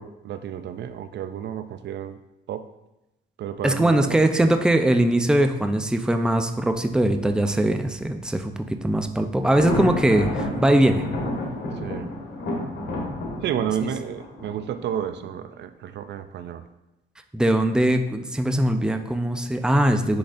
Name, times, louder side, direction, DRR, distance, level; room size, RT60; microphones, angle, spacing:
voice 1, 0.0-2.2 2.5-2.6 3.4-4.2 11.8-12.1 13.4-16.6, right 10 dB, 60° right, 10 dB, 0.4 m, -31 dB
voice 2, 3.6-11.0 13.8-13.9 17.3-20.2, right 1 dB, 5° right, 6 dB, 0.5 m, -21 dB
Thunder, 9.4-15.2, left 1 dB, 75° left, 1.8 m, -30 dB
10.0 x 3.9 x 2.6 m, 0.94 s
cardioid pair, 90°, 20 cm